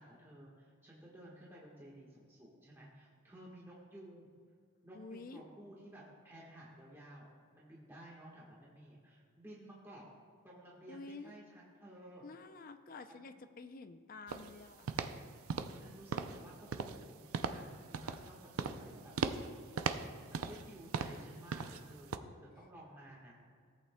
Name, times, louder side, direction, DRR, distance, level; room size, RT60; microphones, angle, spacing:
voice 1, 0.0-4.3 4.8-7.3 7.5-10.1 10.4-12.2 13.1-13.4 15.8-19.6 20.3-22.3 22.5-23.3, right 1 dB, 10° right, -6 dB, 1.3 m, -54 dB
voice 2, 4.9-5.4 10.9-11.4 12.2-14.9, left 3 dB, 40° left, 9 dB, 0.4 m, -49 dB
sound 1, 14.3-14.5 14.9-15.2 15.5-15.8 16.1-16.4 16.7-17.0 17.3-17.6 17.9-18.3 18.6-18.9 19.2-19.5 19.8-20.7 20.9-21.2 21.5-21.8 22.1-22.2, right 5 dB, 75° right, 0.5 m, -37 dB
17.0 x 8.6 x 2.2 m, 2.1 s
head